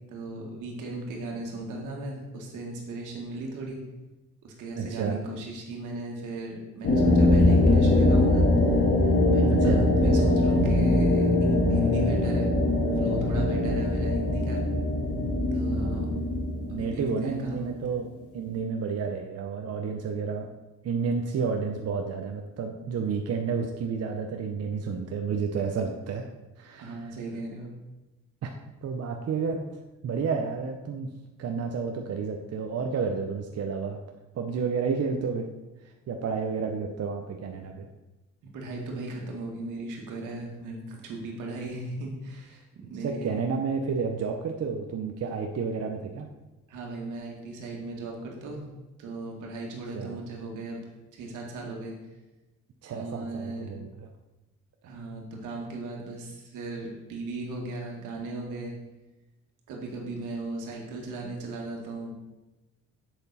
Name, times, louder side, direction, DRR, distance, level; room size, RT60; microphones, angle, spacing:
voice 1, 0.1-3.8 4.4-8.5 9.3-12.5 12.9-14.6 15.5-16.1 16.7-17.8 26.8-27.7 38.5-43.4 46.7-48.6 49.0-50.8 51.1-51.9 52.9-53.7 54.8-58.7 59.7-62.1, right 2 dB, 90° right, 0 dB, 2.0 m, -37 dB
voice 2, 4.8-5.2 9.5-9.9 15.7-16.1 16.7-18.1 18.3-20.5 20.8-26.2 26.6-27.0 28.4-28.5 28.8-29.6 30.0-31.1 31.4-34.0 34.3-35.5 36.1-37.9 43.0-46.3 49.9-50.2 52.8-54.1 54.8-54.9, right 5 dB, 55° right, 3 dB, 0.8 m, -30 dB
sound 1, 6.8-18.1, left 1 dB, 50° left, 2.0 m, -22 dB
7.9 x 6.7 x 4.2 m, 1.1 s
cardioid pair, 90°, 30 cm